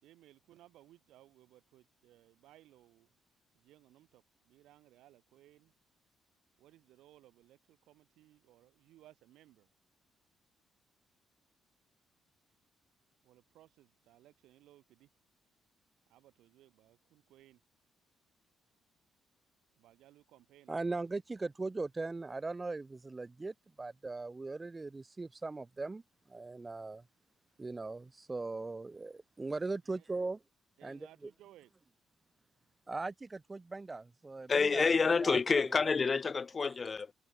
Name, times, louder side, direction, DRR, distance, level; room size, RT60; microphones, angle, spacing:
voice 1, 0.0-3.1 3.5-5.7 6.6-9.7 13.2-15.1 16.1-17.6 19.8-20.8 29.9-30.3 30.8-31.7, right 14 dB, 85° right, 5.8 m, -62 dB
voice 2, 20.7-26.0 26.3-27.0 27.6-30.4 30.8-31.3 32.9-35.9, right 3 dB, 25° right, 0.6 m, -39 dB
voice 3, 34.5-37.1, left 5 dB, 35° left, 1.5 m, -28 dB
cardioid pair, 90°, 0 cm